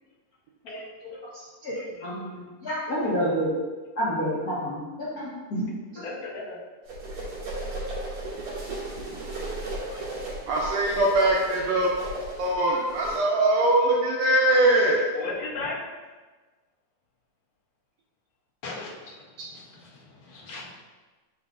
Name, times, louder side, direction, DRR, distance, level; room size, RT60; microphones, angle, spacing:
voice 1, 1.1-1.7 2.0-3.5 3.9-5.6 5.9-6.0, equal, 55° left, -9 dB, 1.0 m, -29 dB
voice 2, 6.0-6.6 9.9-10.0 15.1-15.8 18.6-20.7, left 3 dB, 85° left, -4 dB, 1.0 m, -37 dB
sound 1, 6.9-13.2, right 2 dB, 55° right, 3.1 m, -35 dB
voice 3, 10.5-11.9 12.4-15.1, right 1 dB, 80° right, -2 dB, 1.6 m, -22 dB
7.3 x 5.4 x 2.5 m, 1.3 s
omnidirectional pair, 3.6 m